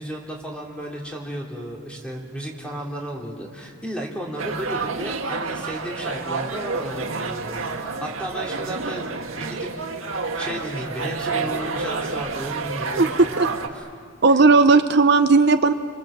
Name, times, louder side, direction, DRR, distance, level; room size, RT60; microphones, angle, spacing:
voice 1, 0.0-7.6 8.0-9.7 10.4-13.3 13.7-13.9, equal, 5° left, -1 dB, 3.1 m, -33 dB
sound 1, 4.4-13.7, right 4 dB, 85° right, 1.8 m, -29 dB
voice 2, 13.0-13.5 14.2-15.7, right 4 dB, 55° right, 9 dB, 0.7 m, -16 dB
29.5 x 24.0 x 7.5 m, 2.1 s
head